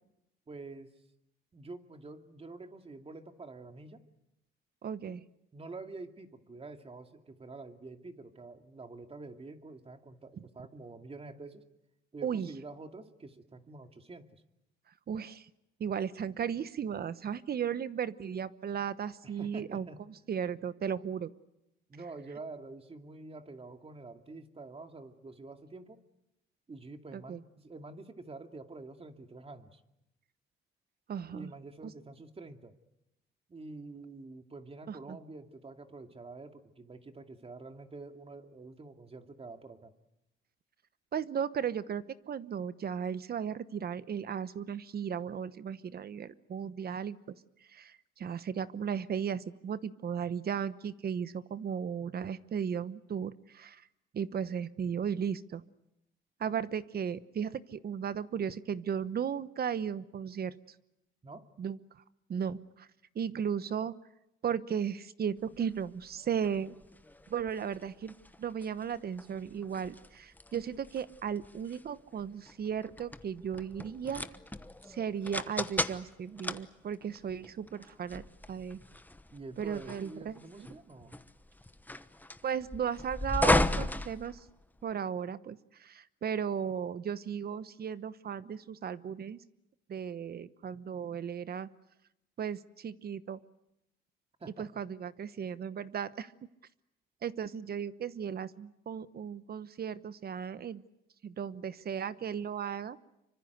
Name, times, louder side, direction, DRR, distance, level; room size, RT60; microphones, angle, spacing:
voice 1, 0.5-0.9 1.5-4.0 5.1-5.2 5.5-11.6 12.1-14.4 19.2-20.0 21.9-26.0 26.7-29.8 31.3-32.7 33.5-39.9 61.2-61.5 79.3-81.2 94.4-94.7, right 3 dB, 30° right, 6 dB, 2.4 m, -47 dB
voice 2, 4.8-5.2 12.2-12.5 15.1-15.5 15.8-19.9 20.3-21.3 27.1-27.4 31.1-31.5 31.8-31.9 34.9-35.2 41.1-47.3 47.7-53.8 54.1-55.6 56.4-60.5 61.6-61.8 62.3-62.9 63.1-64.0 64.4-66.7 67.3-74.2 74.9-78.8 79.6-80.7 82.4-84.4 84.8-89.4 89.9-91.7 92.4-93.4 94.6-96.3 97.2-100.8 101.2-103.0, right 7 dB, 50° right, 15 dB, 1.0 m, -36 dB
sound 1, 65.5-84.9, left 1 dB, 10° left, 1.1 m, -36 dB
25.5 x 24.5 x 8.1 m, 0.87 s
cardioid pair, 90°, 20 cm